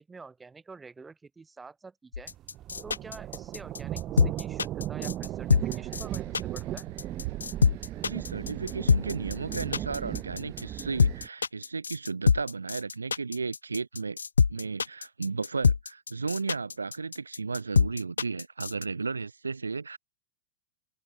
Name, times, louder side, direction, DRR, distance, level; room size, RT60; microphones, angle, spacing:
voice 1, 0.0-2.3 2.8-6.9, right 4 dB, 10° right, 7.8 m, -48 dB
sound 1, 2.1-18.8, left 5 dB, 75° left, 0.7 m, -25 dB
sound 2, 2.3-11.3, right 13 dB, 35° right, 5.4 m, -37 dB
sound 3, 5.2-11.3, right 23 dB, 50° right, 3.1 m, -46 dB
voice 2, 8.0-14.2 14.5-20.0, right 4 dB, 75° right, 1.1 m, -34 dB
open air
figure-of-eight pair, 90°, 0 cm